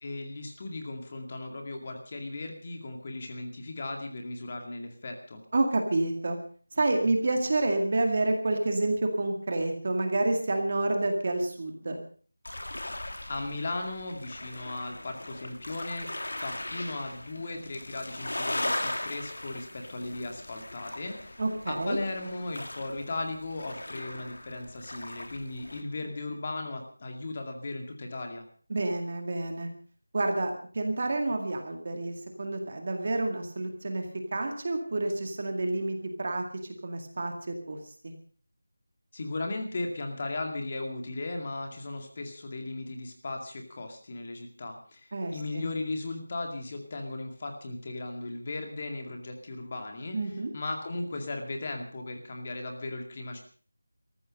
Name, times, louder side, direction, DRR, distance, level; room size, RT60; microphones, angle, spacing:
voice 1, 0.0-5.4 13.3-21.4 21.7-28.5 39.1-50.2 50.5-53.4, left 2 dB, 20° left, 4 dB, 2.2 m, -37 dB
voice 2, 5.5-6.4 6.8-12.0 21.4-22.0 28.7-29.7 30.1-34.1 34.3-36.4 36.8-37.8 38.0-38.1 45.1-45.7 50.1-50.5, right 2 dB, 25° right, 4 dB, 2.0 m, -29 dB
sound 1, 12.4-25.8, left 1 dB, 80° left, 2.8 m, -39 dB
18.5 x 14.5 x 5.3 m, 0.43 s
figure-of-eight pair, 180°, 0 cm